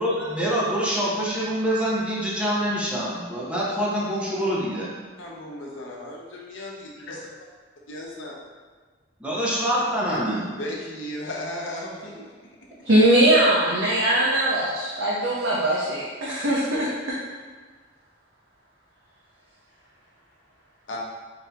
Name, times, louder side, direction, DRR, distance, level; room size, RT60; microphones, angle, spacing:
voice 1, 0.0-4.9 9.2-10.4 12.1-12.2, equal, 5° right, -7 dB, 0.8 m, -25 dB
voice 2, 5.2-7.3 7.9-8.3 10.6-12.3 20.9-21.0, left 1 dB, 80° left, -3 dB, 0.8 m, -35 dB
voice 3, 12.9-16.9, right 1 dB, 75° right, -7 dB, 0.7 m, -20 dB
4.0 x 2.8 x 3.4 m, 1.5 s
head